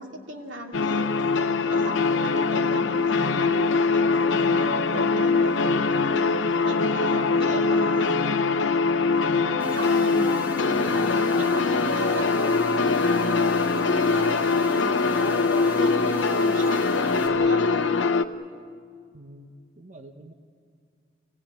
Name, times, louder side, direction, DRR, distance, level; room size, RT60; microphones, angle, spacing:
voice 1, 0.0-6.4 6.6-8.3 9.2-12.3 13.1-17.6, right 1 dB, 85° right, 2 dB, 2.7 m, -36 dB
sound 1, 0.7-18.2, left 4 dB, 85° left, 0.8 m, -22 dB
sound 2, 9.6-17.3, right 1 dB, 10° right, 2.5 m, -36 dB
voice 2, 19.1-20.3, right 1 dB, 40° right, 5 dB, 1.0 m, -47 dB
28.0 x 17.5 x 8.8 m, 2.2 s
head